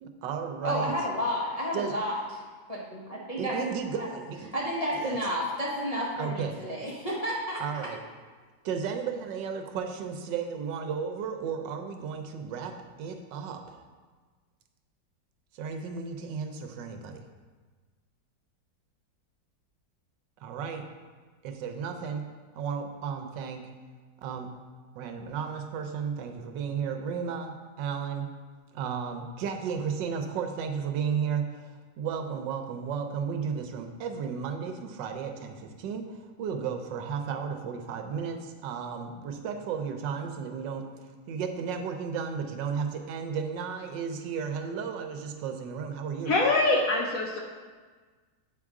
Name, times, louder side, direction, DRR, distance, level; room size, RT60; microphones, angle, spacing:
voice 1, 0.0-0.9 1.7-1.9 3.4-4.5 5.0-5.2 6.2-6.6 7.6-8.0 8.6-13.8 15.5-17.2 20.4-20.8 21.4-22.2 22.5-23.6 24.2-24.5 25.0-28.3 28.7-40.9 41.3-46.3, right 6 dB, 80° right, 6 dB, 1.3 m, -34 dB
voice 2, 0.6-2.2 2.7-3.6 4.0-4.1 4.5-7.9, equal, 40° left, -6 dB, 0.5 m, -31 dB
voice 3, 46.3-47.4, left 2 dB, 65° left, 0 dB, 0.9 m, -24 dB
7.7 x 4.7 x 3.6 m, 1.4 s
omnidirectional pair, 2.0 m